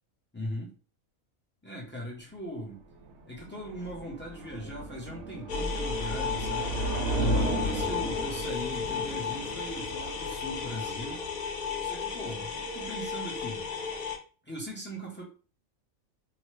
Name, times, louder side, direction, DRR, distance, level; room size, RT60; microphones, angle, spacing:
voice 1, 0.3-0.7 1.6-2.8 3.3-6.9 7.4-11.2 11.8-13.7 14.4-15.2, equal, 15° left, 0.4 m, -39 dB
sound 1, 2.7-11.7, right 1 dB, 65° right, 0.8 m, -35 dB
sound 2, 5.5-14.2, left 5 dB, 80° left, 0.4 m, -34 dB
2.9 x 2.1 x 3.1 m
omnidirectional pair, 1.4 m